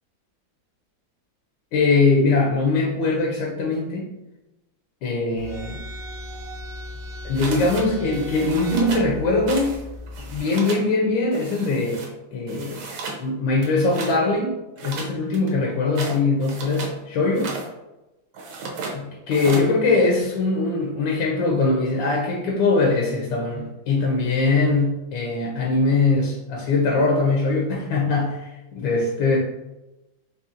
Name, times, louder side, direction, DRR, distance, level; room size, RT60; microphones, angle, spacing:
voice 1, 1.7-4.1 5.0-5.8 7.2-9.7 10.3-12.0 12.3-12.9 13.2-17.5 18.9-29.4, left 3 dB, 80° left, -2 dB, 1.4 m, -22 dB
sound 1, 5.4-10.4, left 1 dB, 90° right, 1.4 m, -37 dB
sound 2, 7.4-7.9 8.1-9.1 9.5-9.8 10.1-10.9 11.3-12.1 12.5-13.2 13.6-14.2 14.8-17.0 17.3-17.7 18.3-19.0 19.3-19.7, right 3 dB, 70° right, 1.2 m, -34 dB
4.1 x 3.1 x 2.4 m, 0.99 s
omnidirectional pair, 2.1 m